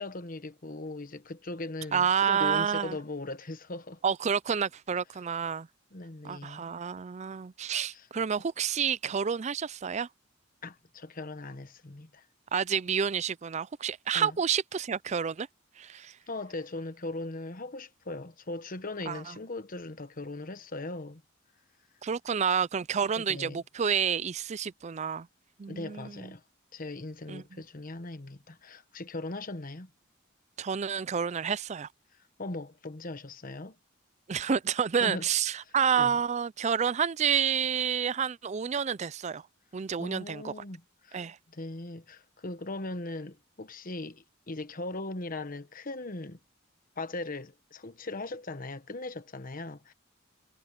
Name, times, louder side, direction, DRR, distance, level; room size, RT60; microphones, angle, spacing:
voice 1, 0.0-4.0 5.9-6.6 7.9-8.1 10.6-12.2 14.1-14.4 16.3-21.2 23.2-23.6 25.7-26.4 26.7-29.9 32.4-33.8 35.0-35.3 36.0-36.2 40.0-41.2 41.5-46.4 47.0-49.9, left 2 dB, 45° left, 1.2 m, -39 dB
voice 2, 1.9-3.0 4.0-5.7 6.2-10.1 12.5-15.5 15.8-16.2 19.1-19.4 22.0-25.3 25.6-26.3 27.3-27.6 30.6-31.9 34.3-39.4 39.7-40.5 41.1-41.4, right 7 dB, 35° right, 0.4 m, -29 dB
head